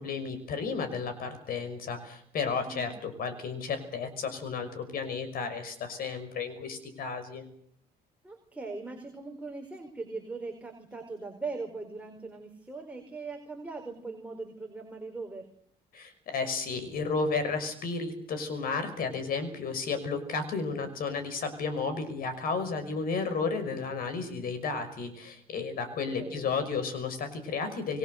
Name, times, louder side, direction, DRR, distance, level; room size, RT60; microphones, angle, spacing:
voice 1, 0.0-7.4 15.9-28.0, left 4 dB, 60° left, 11 dB, 5.9 m, -33 dB
voice 2, 8.2-15.5 26.2-26.6, right 3 dB, 10° right, 2 dB, 4.8 m, -40 dB
27.0 x 22.0 x 6.7 m, 0.65 s
cardioid pair, 110°, 17 cm